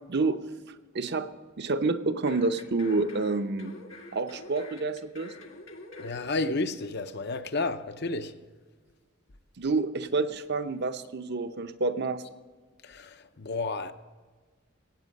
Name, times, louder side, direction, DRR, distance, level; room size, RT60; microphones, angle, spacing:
voice 1, 0.9-1.3 1.6-3.7 4.1-5.3 9.6-12.2, right 3 dB, 55° right, 0.8 m, -28 dB
sound 1, 2.3-6.3 6.6-6.7, left 2 dB, 85° left, 1.7 m, -46 dB
voice 2, 6.0-8.3 12.8-13.9, left 3 dB, 55° left, 0.8 m, -31 dB
17.5 x 8.2 x 5.3 m
head